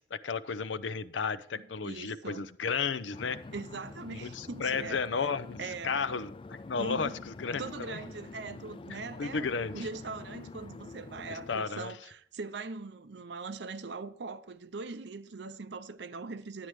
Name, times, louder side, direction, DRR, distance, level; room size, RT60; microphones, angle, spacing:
voice 1, 0.0-3.4 4.2-5.6 5.8-8.0 9.2-9.9 11.3-11.9, left 5 dB, 90° left, 0.6 m, -33 dB
voice 2, 1.8-2.5 3.5-5.0 5.6-6.0 6.8-7.3 7.6-16.7, right 4 dB, 75° right, 0.7 m, -41 dB
sound 1, 3.1-11.6, left 3 dB, 30° left, 0.3 m, -46 dB
11.5 x 9.1 x 3.2 m
head